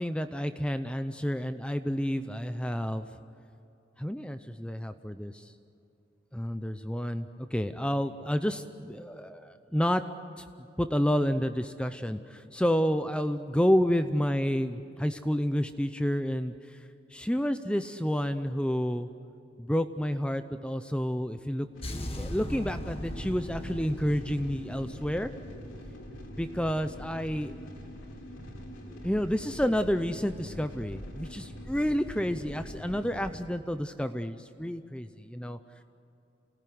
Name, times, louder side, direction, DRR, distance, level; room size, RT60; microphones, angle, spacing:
voice 1, 0.0-3.1 4.0-5.5 6.3-10.0 10.4-16.8 17.1-19.1 19.6-25.3 26.4-27.5 28.8-35.6, equal, 5° left, 9 dB, 0.6 m, -30 dB
sound 1, 21.7-33.3, equal, 90° left, 4.1 m, -43 dB
sound 2, 21.8-25.9, left 1 dB, 30° left, 1.8 m, -39 dB
28.0 x 18.5 x 9.5 m, 2.7 s
head